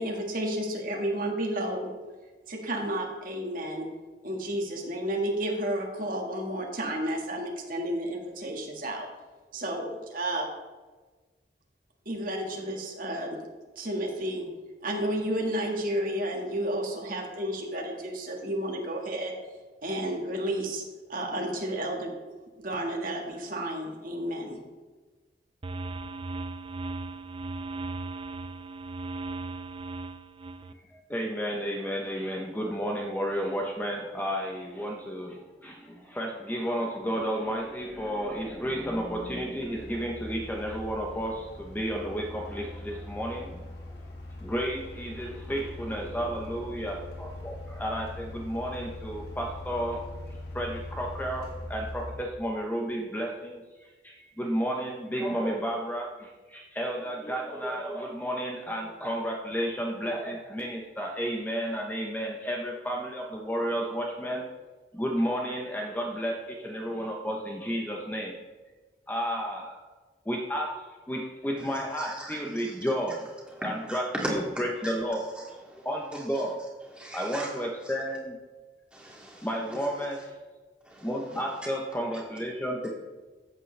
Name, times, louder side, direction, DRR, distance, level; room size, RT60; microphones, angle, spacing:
voice 1, 0.0-1.9 2.5-3.9 4.2-9.1 9.5-10.4 12.0-13.4 13.7-14.5 14.8-19.3 19.8-20.8 21.1-22.1 22.6-24.6, right 1 dB, 50° right, 1 dB, 1.7 m, -31 dB
sound 1, 25.6-30.7, right 3 dB, 30° right, 0.4 m, -37 dB
voice 2, 30.9-43.7 44.4-50.0 50.5-64.5 64.9-68.4 69.1-69.8 70.3-70.8 71.1-73.3 73.6-74.0 74.3-75.2 75.8-76.5 77.1-78.4 79.4-80.3 81.0-82.9, equal, 10° left, 0 dB, 0.8 m, -32 dB
sound 2, 36.5-36.6 37.1-52.2, left 1 dB, 65° left, 2.0 m, -42 dB
voice 3, 71.6-72.7 73.5-74.9 75.4-76.4 76.9-77.5 77.8-77.9 78.9-80.1 80.8-81.4, right 1 dB, 5° right, -4 dB, 2.2 m, -39 dB
13.5 x 8.1 x 3.3 m, 1.3 s
head